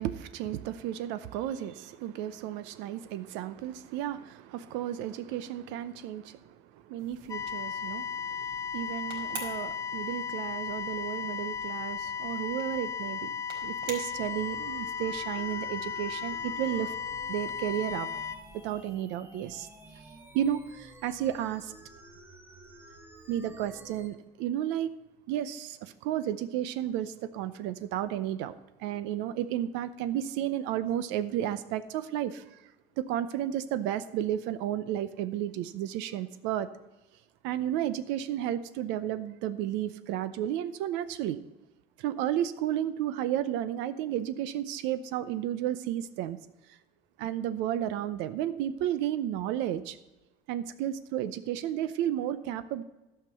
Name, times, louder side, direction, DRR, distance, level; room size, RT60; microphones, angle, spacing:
voice 1, 0.0-13.3 13.6-16.9 17.3-18.1 18.6-19.7 20.3-21.7 23.3-24.9 25.3-32.6 33.0-36.7 37.4-41.4 42.0-46.4 47.2-50.0 50.5-52.8, right 11 dB, 85° right, 13 dB, 0.7 m, -32 dB
sound 1, 7.0-18.9, right 4 dB, 65° right, 4.2 m, -50 dB
sound 2, 7.3-18.4, left 7 dB, 20° left, 0.7 m, -35 dB
sound 3, 14.1-24.1, right 1 dB, 10° right, 1.1 m, -52 dB
12.0 x 5.9 x 6.8 m, 1.0 s
cardioid pair, 155°, 18 cm